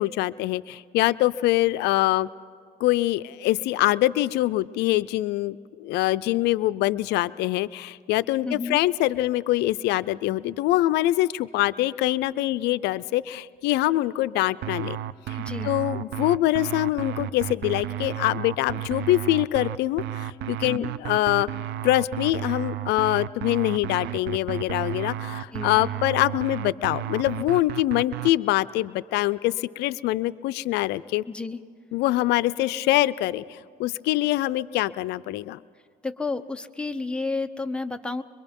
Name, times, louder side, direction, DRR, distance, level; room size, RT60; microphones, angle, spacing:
voice 1, 0.0-2.3 2.8-15.0 15.3-15.4 15.6-21.5 21.8-31.2 31.9-35.6, left 16 dB, 85° left, 16 dB, 0.4 m, -24 dB
voice 2, 8.4-8.8 15.4-15.7 20.6-20.9 25.5-25.7 31.3-31.6 36.0-38.2, left 3 dB, 5° left, 7 dB, 0.8 m, -31 dB
sound 1, 14.6-28.3, right 12 dB, 75° right, 0.7 m, -32 dB
24.5 x 22.5 x 5.3 m, 2.3 s
cardioid pair, 110°, 17 cm